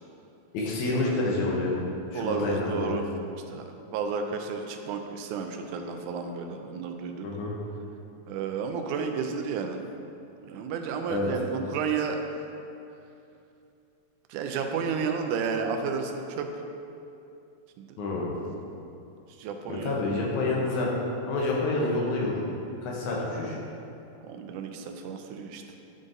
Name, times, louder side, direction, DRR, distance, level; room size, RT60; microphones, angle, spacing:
voice 1, 0.5-1.7 2.1-2.9 7.2-7.5 11.1-11.3 18.0-18.3 19.7-20.9 21.3-22.4 22.8-23.6, left 2 dB, 75° left, -3 dB, 2.2 m, -28 dB
voice 2, 2.1-3.0 3.5-7.3 8.3-9.8 10.4-12.2 14.3-16.5 17.8-18.0 19.4-20.0 24.2-25.6, right 5 dB, 85° right, 4 dB, 2.0 m, -32 dB
10.5 x 3.8 x 2.6 m, 2.7 s
omnidirectional pair, 3.5 m